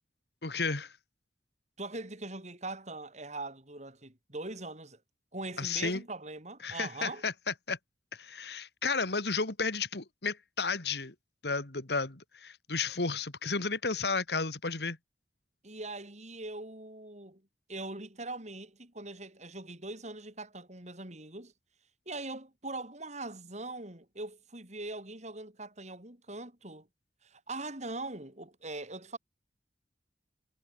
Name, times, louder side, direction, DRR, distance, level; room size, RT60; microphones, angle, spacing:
voice 1, 0.4-0.9 5.6-6.0 6.6-7.8 8.1-11.1 11.4-15.0, left 4 dB, 65° left, 2.2 m, -33 dB
voice 2, 1.8-5.0 5.3-7.2 15.6-17.4 17.7-21.5 22.1-26.9 27.2-29.2, right 2 dB, 40° right, 6.3 m, -41 dB
head